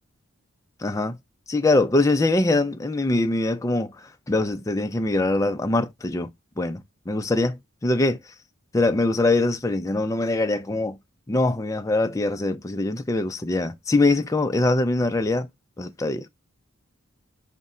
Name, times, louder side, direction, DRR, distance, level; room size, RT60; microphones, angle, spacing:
voice 1, 0.8-1.2 1.5-6.3 6.6-8.2 8.7-11.0 11.3-15.5 15.8-16.3, left 2 dB, 15° left, 0.4 m, -23 dB
4.2 x 2.1 x 3.6 m
head